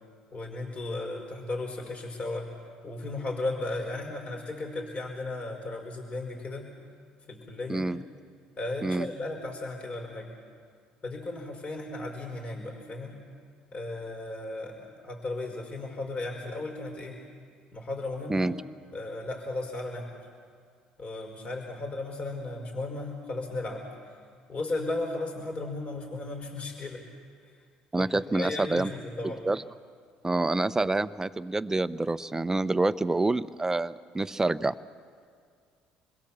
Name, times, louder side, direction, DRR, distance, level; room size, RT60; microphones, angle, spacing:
voice 1, 0.3-2.5 2.8-6.7 7.3-7.9 8.6-10.3 11.0-13.2 13.7-17.2 17.7-18.5 18.9-20.3 21.0-24.1 24.5-27.0 27.4-27.5 28.0-29.4, left 2 dB, 40° left, 1 dB, 5.1 m, -35 dB
voice 2, 7.7-8.0 8.8-9.1 18.3-18.6 27.9-28.9 29.2-29.6 30.2-34.7, right 2 dB, 15° right, 15 dB, 0.8 m, -27 dB
28.0 x 21.5 x 7.4 m, 2.1 s
hypercardioid pair, 60°, 3 cm